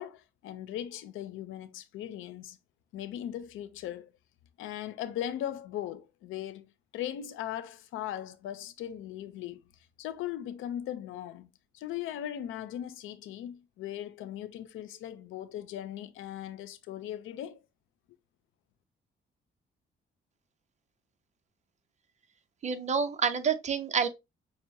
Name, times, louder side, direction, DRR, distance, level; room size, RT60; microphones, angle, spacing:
voice 1, 0.0-2.6 2.9-4.1 4.6-9.6 10.0-17.6, left 11 dB, 85° left, 0.5 m, -39 dB
voice 2, 22.6-24.1, right 6 dB, 35° right, 0.6 m, -28 dB
5.9 x 2.1 x 2.7 m
cardioid pair, 90°, 20 cm